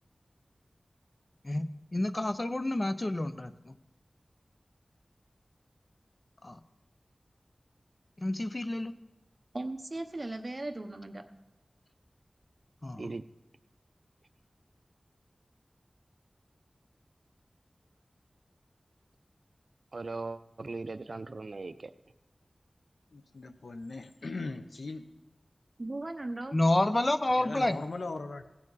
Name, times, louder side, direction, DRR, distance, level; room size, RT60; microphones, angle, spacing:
voice 1, 1.4-3.7 6.4-6.6 8.2-8.9 12.8-13.1 26.5-27.8, left 1 dB, 35° left, 11 dB, 0.5 m, -29 dB
voice 2, 9.5-11.2 25.8-26.6, right 2 dB, 40° right, 6 dB, 0.9 m, -37 dB
voice 3, 19.9-21.9, right 3 dB, 65° right, 12 dB, 0.4 m, -39 dB
voice 4, 23.1-25.2 27.4-28.5, left 3 dB, 85° left, 9 dB, 0.6 m, -39 dB
16.5 x 7.4 x 4.0 m, 0.98 s
wide cardioid pair, 70°, 0 cm